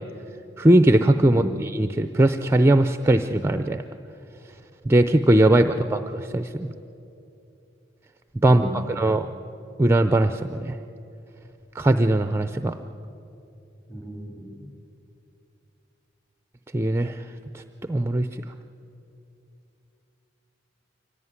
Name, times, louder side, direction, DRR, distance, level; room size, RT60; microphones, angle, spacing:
voice 1, 0.6-3.8 4.8-6.7 8.4-9.3 9.8-10.8 11.7-12.8 16.7-17.6 17.9-18.4, right 1 dB, 15° right, 9 dB, 0.5 m, -20 dB
voice 2, 1.3-1.6 8.5-9.2 13.9-14.7, equal, 20° left, 3 dB, 3.1 m, -35 dB
24.0 x 17.0 x 9.6 m, 2.8 s
head